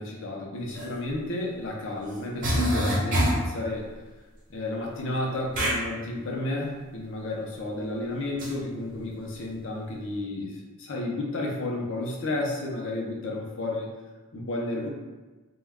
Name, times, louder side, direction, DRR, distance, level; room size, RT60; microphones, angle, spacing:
voice 1, 0.0-3.9 4.5-13.9 14.3-14.9, left 2 dB, 60° left, -1 dB, 0.6 m, -32 dB
sound 1, 0.7-0.9 2.1-2.2 2.4-3.5 5.5-5.8 8.4-8.5, equal, 35° right, 0.7 m, -25 dB
2.2 x 2.2 x 3.4 m, 1.2 s
head